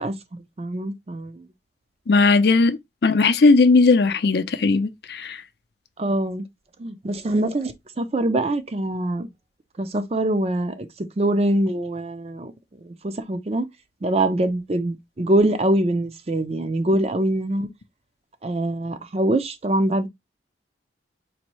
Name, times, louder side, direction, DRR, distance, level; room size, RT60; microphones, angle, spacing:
voice 1, 0.0-1.5 6.0-6.4 6.8-9.3 9.8-13.7 14.0-17.7 18.4-20.1, right 1 dB, 35° right, 0.5 m, -24 dB
voice 2, 2.1-5.4, left 3 dB, 65° left, 0.5 m, -18 dB
4.1 x 2.6 x 3.0 m
head